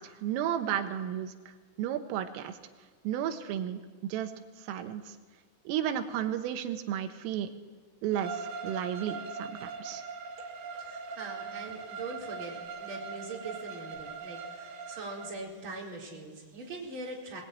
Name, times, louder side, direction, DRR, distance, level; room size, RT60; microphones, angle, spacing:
voice 1, 0.0-1.3 1.8-2.6 3.1-4.3 4.6-5.2 5.7-7.5 8.0-10.0, right 10 dB, 85° right, 7 dB, 3.8 m, -33 dB
Bowed string instrument, 8.1-15.3, right 5 dB, 70° right, 4.4 m, -41 dB
voice 2, 10.7-17.4, right 2 dB, 25° right, -3 dB, 4.3 m, -42 dB
21.0 x 20.5 x 9.2 m, 1.4 s
omnidirectional pair, 5.7 m